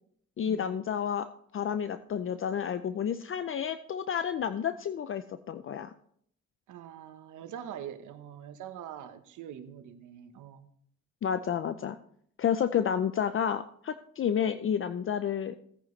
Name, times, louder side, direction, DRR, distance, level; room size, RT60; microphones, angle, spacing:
voice 1, 0.4-1.3 1.5-5.9 11.2-12.0 12.4-15.5, left 8 dB, 45° left, 11 dB, 0.6 m, -30 dB
voice 2, 6.7-10.7, right 9 dB, 80° right, 10 dB, 1.2 m, -44 dB
16.5 x 9.4 x 3.2 m, 0.66 s
cardioid pair, 90°, 30 cm